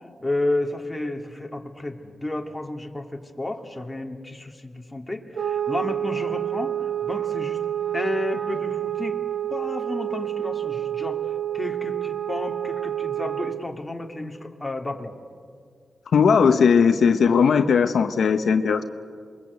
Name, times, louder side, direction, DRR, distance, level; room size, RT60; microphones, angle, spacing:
voice 1, 0.2-7.6 7.9-9.2 9.5-11.2 11.5-15.1, left 1 dB, 15° left, 2 dB, 2.7 m, -31 dB
sound 1, 5.3-13.7, right 11 dB, 65° right, 0.6 m, -28 dB
voice 2, 16.1-18.8, left 6 dB, 80° left, 7 dB, 1.1 m, -18 dB
28.0 x 22.0 x 8.3 m, 2.1 s
cardioid pair, 80°, 0 cm